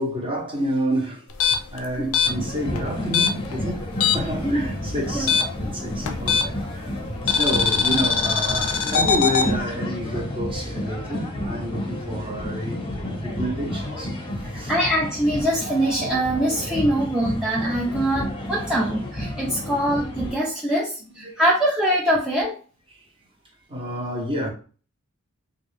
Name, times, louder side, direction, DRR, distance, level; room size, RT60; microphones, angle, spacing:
voice 1, 0.0-6.6 7.2-12.8 13.1-14.2 14.5-14.7 20.7-20.8 21.2-21.4 22.9-23.0 23.7-24.5, equal, 25° right, 1.0 m, -29 dB
sound 1, 1.3-4.4 4.7-6.7 7.3-9.5, left 6 dB, 65° left, 0.5 m, -22 dB
sound 2, 2.2-20.4, left 1 dB, 25° left, 0.9 m, -31 dB
voice 2, 14.7-22.6, right 1 dB, 5° right, 0.5 m, -23 dB
3.6 x 2.6 x 3.3 m
head